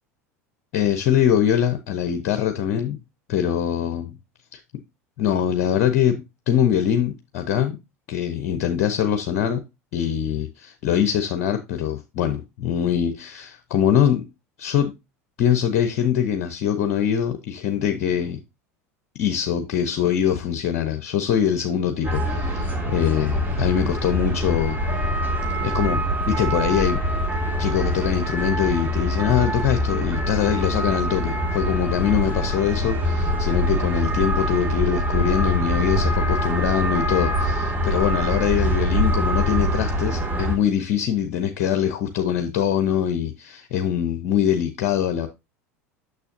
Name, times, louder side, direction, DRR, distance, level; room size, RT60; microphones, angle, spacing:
voice 1, 0.7-3.0 3.3-4.2 4.5-4.6 5.2-7.8 8.1-9.6 9.9-14.3 14.6-14.9 15.4-18.4 19.2-24.8 25.0-25.1 25.6-27.0 27.6-45.3, left 9 dB, 60° left, 0.8 m, -23 dB
sound 1, 22.0-40.6, equal, 20° right, 2.1 m, -24 dB
6.7 x 6.6 x 2.7 m
hypercardioid pair, 80°, 8 cm